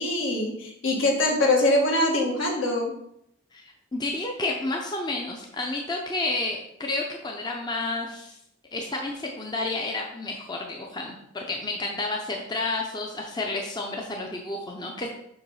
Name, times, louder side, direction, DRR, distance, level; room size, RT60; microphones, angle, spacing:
voice 1, 0.0-2.9, left 1 dB, 70° left, 0 dB, 1.6 m, -23 dB
voice 2, 3.5-8.4 8.7-15.1, left 2 dB, 20° left, 1 dB, 0.6 m, -31 dB
7.0 x 3.1 x 5.5 m, 0.77 s
head